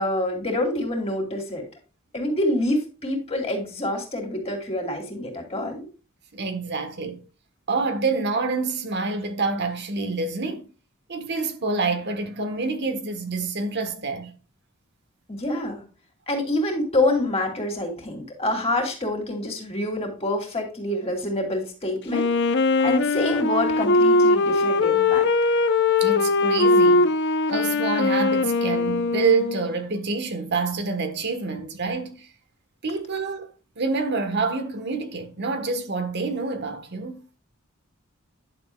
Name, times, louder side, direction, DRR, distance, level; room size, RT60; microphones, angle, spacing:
voice 1, 0.0-1.6 2.1-5.9 15.3-15.8 16.3-22.3 22.8-25.3, left 1 dB, 30° left, 3.1 m, -26 dB
voice 2, 6.3-7.2 7.7-10.7 11.1-14.3 26.0-27.1 27.5-32.3 32.8-37.2, right 4 dB, 55° right, 1.4 m, -27 dB
Wind instrument woodwind instrument, 22.1-29.8, left 3 dB, 55° left, 0.8 m, -20 dB
11.0 x 7.2 x 2.4 m
head